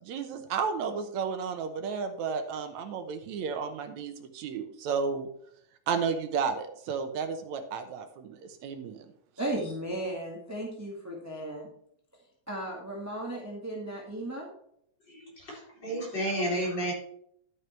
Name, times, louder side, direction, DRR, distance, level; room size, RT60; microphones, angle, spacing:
voice 1, 0.0-5.3 5.9-9.1, right 5 dB, 75° right, 7 dB, 2.2 m, -32 dB
voice 2, 9.4-11.7 12.5-14.5, right 1 dB, 5° right, -3 dB, 1.5 m, -35 dB
voice 3, 15.1-16.9, right 1 dB, 35° left, -4 dB, 4.6 m, -31 dB
12.0 x 6.5 x 4.5 m, 0.68 s
omnidirectional pair, 3.3 m